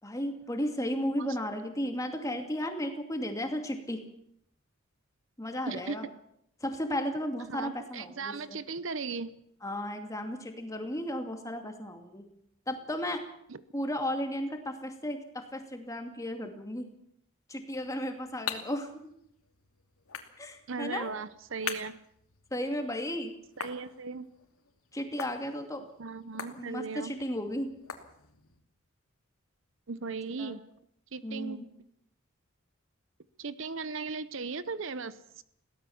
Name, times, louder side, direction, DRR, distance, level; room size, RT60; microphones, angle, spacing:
voice 1, 0.0-4.0 5.4-6.1 6.6-8.6 9.6-12.2 12.7-13.2 13.7-16.9 17.5-19.0 20.4-21.1 22.5-23.3 24.9-25.8 26.6-27.7 30.0-30.6 31.2-31.7, equal, 15° left, 5 dB, 2.5 m, -34 dB
voice 2, 7.5-9.3 13.5-13.6 20.7-22.0 23.6-24.3 26.0-27.1 29.9-30.6 31.1-31.6 33.4-35.4, right 4 dB, 60° right, 15 dB, 0.8 m, -37 dB
sound 1, 17.7-28.6, left 7 dB, 85° left, 2.6 m, -45 dB
21.5 x 17.0 x 7.2 m, 0.72 s
head